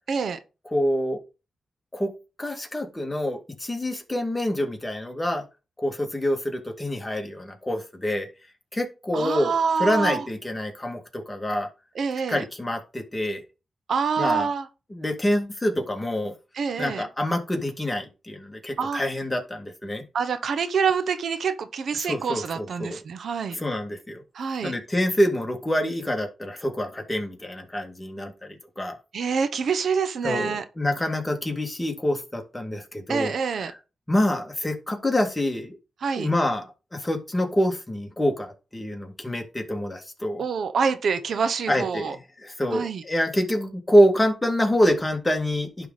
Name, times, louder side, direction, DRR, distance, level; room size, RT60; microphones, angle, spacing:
voice 1, 0.1-0.4 9.1-10.2 11.9-12.4 13.9-14.7 16.5-17.0 18.8-19.0 20.1-23.6 24.3-24.7 29.1-30.6 33.1-33.7 36.0-36.3 40.4-42.2 42.7-43.0, right 6 dB, 70° right, 0.9 m, -26 dB
voice 2, 0.7-1.2 1.9-2.1 2.4-5.4 5.8-8.3 8.7-9.5 9.8-11.7 12.3-13.4 14.2-14.5 14.9-16.3 16.8-20.0 22.0-23.0 23.5-24.2 24.6-29.0 30.2-33.3 33.7-33.8 34.1-35.8 36.2-36.6 36.9-40.4 41.7-45.9, equal, 15° left, 2.1 m, -26 dB
11.0 x 3.9 x 4.0 m
cardioid pair, 65°, 0 cm